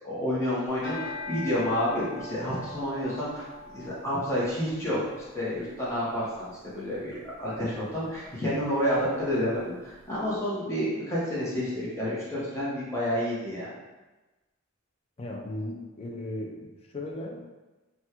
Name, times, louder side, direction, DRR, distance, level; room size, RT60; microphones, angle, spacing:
voice 1, 0.0-13.7, equal, 15° left, -8 dB, 0.9 m, -29 dB
sound 1, 0.7-10.0, left 2 dB, 75° left, 1.1 m, -44 dB
voice 2, 15.2-17.4, left 1 dB, 30° left, 0 dB, 0.4 m, -36 dB
3.4 x 2.3 x 2.9 m, 1.1 s
head